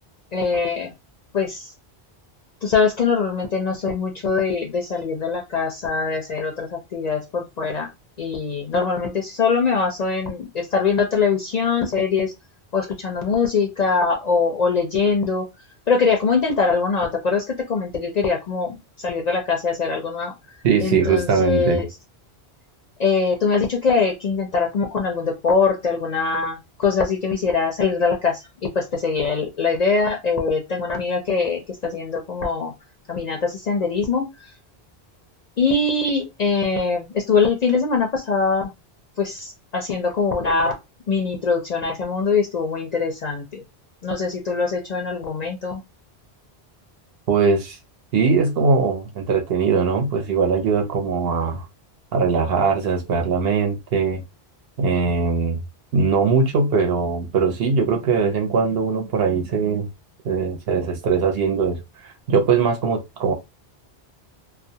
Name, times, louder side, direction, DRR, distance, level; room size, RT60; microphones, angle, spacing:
voice 1, 0.3-0.9 1.3-1.7 2.6-7.9 8.2-12.3 12.7-15.5 15.9-20.3 20.8-21.9 23.0-32.7 33.1-34.3 35.6-38.7 39.2-40.8 41.1-43.6 44.0-45.8, left 4 dB, 55° left, 0.5 m, -22 dB
voice 2, 20.6-21.8 47.3-47.8 48.1-51.7 52.1-54.2 54.8-55.6 55.9-59.9 60.2-61.8 62.3-63.3, right 5 dB, 70° right, 0.9 m, -20 dB
2.4 x 2.1 x 2.7 m
omnidirectional pair, 1.1 m